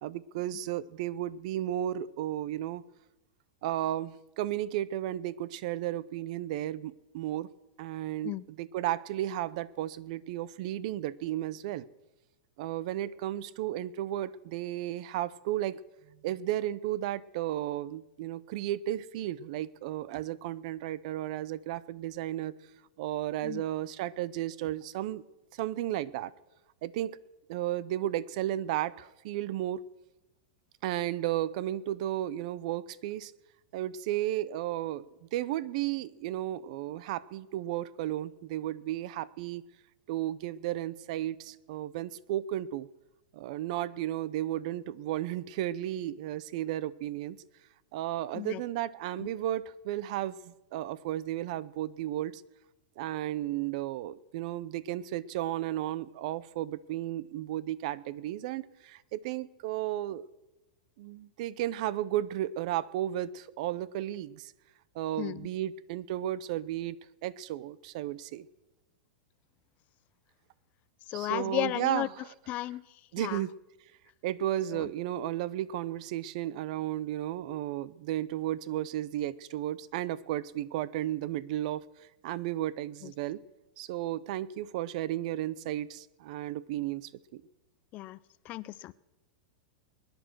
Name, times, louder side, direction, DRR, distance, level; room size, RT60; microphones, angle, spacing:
voice 1, 0.0-2.8 3.6-7.5 7.8-11.9 12.6-15.8 16.2-22.6 23.0-25.2 25.5-26.3 26.8-27.1 27.5-29.8 30.8-33.3 33.7-39.6 40.1-42.9 43.3-47.4 47.9-52.4 53.0-60.3 61.0-64.5 64.9-67.0 67.2-68.5 71.1-72.4 72.6-72.8 73.1-73.5 74.2-83.4 83.8-87.4, right 13 dB, 55° right, 21 dB, 0.7 m, -34 dB
voice 2, 71.1-72.1 72.5-72.8 73.2-73.5 74.7-74.9 83.0-83.1 87.9-88.2 88.4-88.9, left 16 dB, 35° left, 18 dB, 0.5 m, -34 dB
21.0 x 10.5 x 6.3 m, 1.0 s
supercardioid pair, 140°, 4 cm